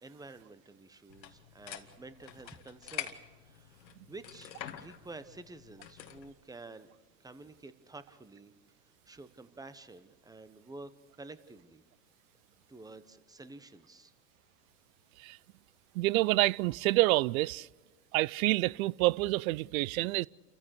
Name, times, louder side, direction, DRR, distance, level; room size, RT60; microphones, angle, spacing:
voice 1, 0.0-3.2 3.4-6.9 7.2-8.5 9.1-10.9 11.2-11.8 12.7-14.1, right 3 dB, 5° right, 1.1 m, -50 dB
sound 1, 1.1-6.3, left 10 dB, 90° left, 1.6 m, -46 dB
voice 2, 15.9-17.7 18.1-20.3, right 19 dB, 60° right, 0.5 m, -28 dB
29.5 x 14.5 x 6.6 m
hypercardioid pair, 105°, 50 cm